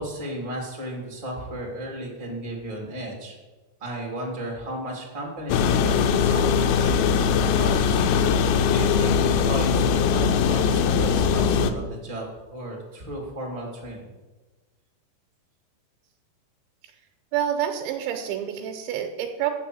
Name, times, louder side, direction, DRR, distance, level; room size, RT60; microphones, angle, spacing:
voice 1, 0.0-3.4 3.8-14.1, right 1 dB, 45° right, -2 dB, 0.4 m, -35 dB
sound 1, 5.5-11.7, left 6 dB, 90° left, 3.0 m, -21 dB
voice 2, 17.3-19.5, right 10 dB, 80° right, 3 dB, 3.0 m, -28 dB
7.9 x 6.6 x 7.6 m, 1.2 s
omnidirectional pair, 5.3 m